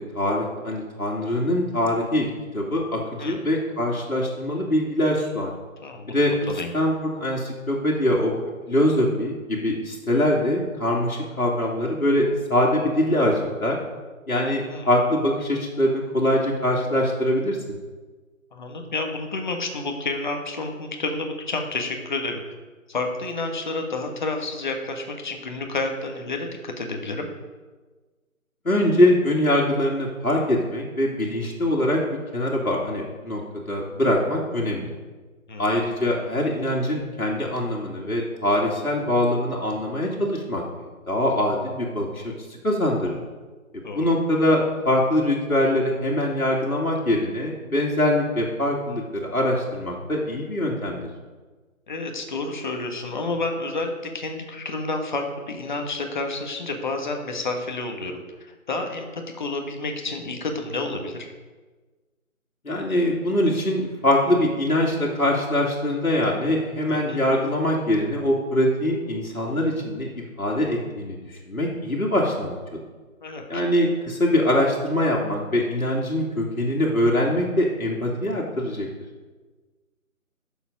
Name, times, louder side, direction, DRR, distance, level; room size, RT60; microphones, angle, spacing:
voice 1, 0.0-2.3 2.5-5.5 6.1-6.3 6.7-8.3 8.7-13.8 14.3-17.8 28.6-33.4 33.7-34.9 35.6-42.2 42.6-43.2 43.9-51.1 62.6-72.8 73.5-78.9, left 1 dB, 90° left, -3 dB, 2.4 m, -23 dB
voice 2, 5.8-6.2 6.5-6.7 14.7-14.9 18.5-22.4 22.9-27.3 35.5-35.6 43.8-44.1 51.9-61.3 66.9-67.2 73.2-73.6, left 3 dB, 35° left, 3 dB, 1.4 m, -30 dB
12.0 x 7.2 x 5.2 m, 1.3 s
figure-of-eight pair, 155°, 42 cm